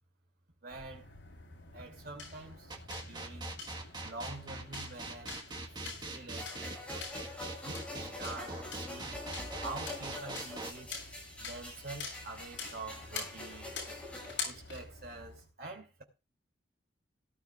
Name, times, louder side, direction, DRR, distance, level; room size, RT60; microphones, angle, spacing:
voice 1, 0.6-1.1 1.7-3.5 4.0-5.4 5.9-7.1 7.6-9.2 9.6-10.9 11.4-13.7 14.4-16.0, right 3 dB, 55° right, 3.1 m, -46 dB
sound 1, 0.7-15.5, left 4 dB, 75° left, 8.0 m, -46 dB
sound 2, 2.7-10.7, right 2 dB, 20° right, 1.6 m, -42 dB
sound 3, 6.4-14.4, left 2 dB, 5° left, 7.0 m, -45 dB
18.0 x 12.0 x 2.5 m
head